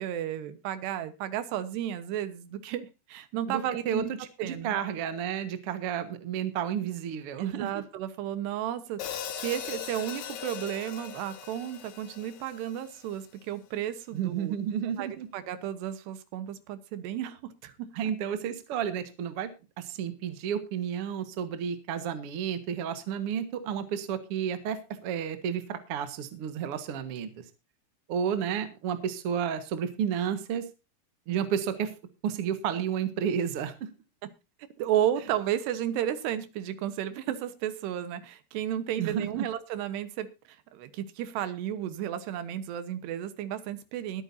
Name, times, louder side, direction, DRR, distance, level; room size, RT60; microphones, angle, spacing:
voice 1, 0.0-4.1 4.4-4.8 7.4-14.6 15.0-17.7 34.8-40.3 40.7-44.2, right 11 dB, 80° right, 12 dB, 3.2 m, -33 dB
voice 2, 3.5-4.0 4.4-7.8 14.1-15.3 17.9-19.5 19.8-27.3 28.1-30.6 31.3-31.9 32.2-33.7 39.0-39.4, right 8 dB, 60° right, 10 dB, 1.5 m, -31 dB
Hi-hat, 9.0-13.2, left 9 dB, 75° left, 3.5 m, -39 dB
22.0 x 8.9 x 2.7 m, 0.28 s
omnidirectional pair, 4.8 m